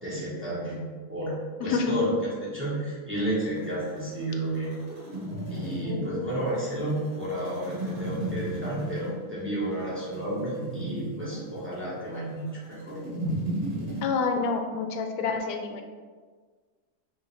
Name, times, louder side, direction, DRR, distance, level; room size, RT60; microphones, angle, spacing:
voice 1, 0.0-0.8 1.1-1.3 1.6-2.1 2.4-4.7 5.5-13.0, right 1 dB, 10° right, -9 dB, 1.1 m, -31 dB
voice 2, 1.6-2.0 5.9-6.1 14.0-15.8, left 4 dB, 90° left, 5 dB, 1.1 m, -28 dB
sound 1, 3.4-14.0, right 1 dB, 50° right, 1.3 m, -35 dB
5.4 x 2.8 x 3.3 m, 1.5 s
omnidirectional pair, 1.7 m